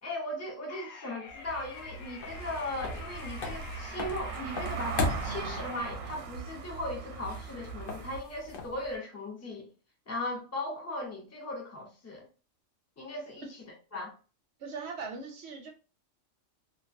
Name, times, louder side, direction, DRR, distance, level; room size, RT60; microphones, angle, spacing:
voice 1, 0.0-9.7 10.1-12.3 13.0-14.1, left 1 dB, 20° left, 0.4 m, -38 dB
sound 1, 0.7-5.9, left 5 dB, 75° left, 0.9 m, -47 dB
sound 2, 1.3-9.0, left 2 dB, 60° left, 0.6 m, -39 dB
Car passing by / Engine, 1.5-8.2, right 6 dB, 85° right, 1.0 m, -40 dB
voice 2, 14.6-15.7, right 4 dB, 65° right, 0.7 m, -40 dB
2.2 x 2.2 x 2.5 m
omnidirectional pair, 1.4 m